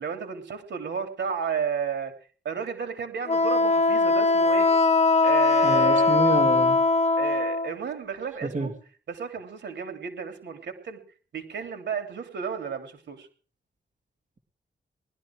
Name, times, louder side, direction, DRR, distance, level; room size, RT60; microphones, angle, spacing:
voice 1, 0.0-2.1 2.4-4.7 5.2-6.2 7.2-8.7 9.1-11.0 11.3-13.3, right 7 dB, 90° right, 7 dB, 3.2 m, -32 dB
Wind instrument woodwind instrument, 3.3-7.7, left 3 dB, 40° left, 0.8 m, -21 dB
voice 2, 5.6-6.8 8.4-8.7, right 3 dB, 45° right, 4 dB, 2.5 m, -28 dB
20.0 x 12.5 x 4.7 m, 0.42 s
wide cardioid pair, 135°, 18 cm